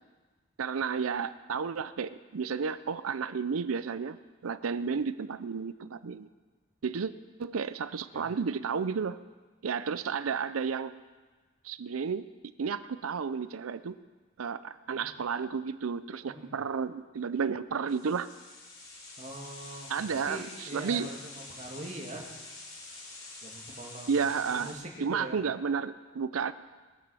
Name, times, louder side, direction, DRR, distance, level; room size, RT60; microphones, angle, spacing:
voice 1, 0.6-4.2 4.4-6.3 6.8-7.1 7.4-9.2 9.6-11.0 11.6-14.0 14.4-18.3 19.9-20.5 20.7-21.1 24.1-24.7 25.0-26.5, right 6 dB, 85° right, 14 dB, 0.5 m, -32 dB
voice 2, 16.3-16.6 19.2-22.3 23.4-25.4, right 1 dB, 35° right, -1 dB, 2.1 m, -43 dB
sound 1, 17.9-24.7, left 2 dB, 85° left, 4.5 m, -47 dB
20.0 x 7.5 x 6.3 m, 1.3 s
head